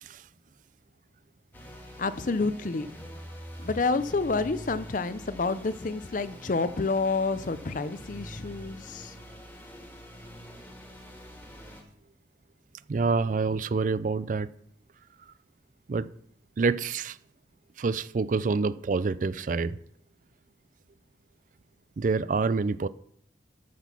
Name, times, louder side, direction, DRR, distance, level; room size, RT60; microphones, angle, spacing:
sound 1, 1.5-11.8, equal, 10° left, 1.8 m, -45 dB
voice 1, 2.0-2.9 3.6-9.1, left 3 dB, 45° left, 0.5 m, -29 dB
voice 2, 12.9-14.5 15.9-16.1 16.6-17.2 17.8-19.8 22.0-22.9, right 4 dB, 45° right, 0.4 m, -27 dB
12.5 x 6.1 x 6.0 m
head